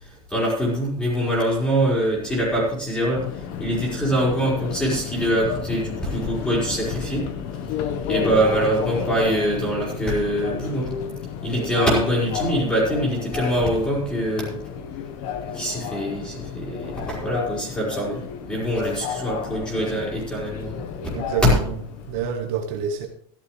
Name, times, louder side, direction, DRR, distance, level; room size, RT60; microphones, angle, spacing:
voice 1, 0.0-7.3 8.0-10.9 11.4-14.6 15.5-21.1, right 1 dB, 5° left, -4 dB, 4.8 m, -24 dB
Subway metro underground, 3.1-22.3, left 8 dB, 60° left, 1.2 m, -32 dB
voice 2, 21.1-21.8 22.1-23.1, right 7 dB, 55° right, 3 dB, 1.4 m, -28 dB
14.0 x 12.0 x 3.3 m, 0.64 s
cardioid pair, 170°, 14 cm